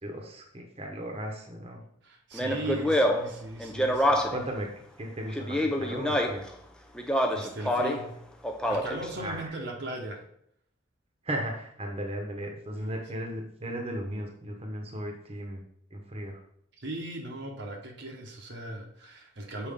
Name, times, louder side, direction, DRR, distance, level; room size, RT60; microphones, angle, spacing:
voice 1, 0.0-1.8 2.4-2.9 4.3-6.4 9.2-9.5 11.2-15.6 15.9-16.4, right 1 dB, 30° right, 2 dB, 1.0 m, -36 dB
voice 2, 2.0-4.3 7.0-8.2 8.6-10.3 12.7-13.0 16.8-19.7, right 1 dB, 60° right, 1 dB, 1.0 m, -38 dB
Speech, 2.3-4.5 5.3-6.5 7.0-8.1 8.4-9.1, equal, 5° left, 0.5 m, -27 dB
6.7 x 4.7 x 3.6 m, 0.69 s
head